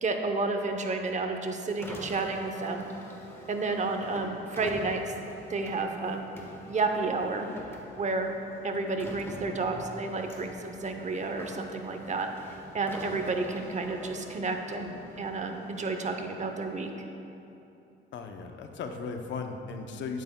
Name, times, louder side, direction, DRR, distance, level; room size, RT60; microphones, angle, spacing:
voice 1, 0.0-2.8 3.5-5.1 5.5-6.3 6.7-7.5 8.0-8.3 8.6-12.3 12.7-16.9, right 3 dB, 35° right, 5 dB, 0.7 m, -31 dB
Car, 1.7-17.1, left 1 dB, 10° left, 1.3 m, -46 dB
voice 2, 18.1-20.2, left 4 dB, 70° left, 5 dB, 0.7 m, -37 dB
10.0 x 9.1 x 2.2 m, 2.8 s
cardioid pair, 90°, 20 cm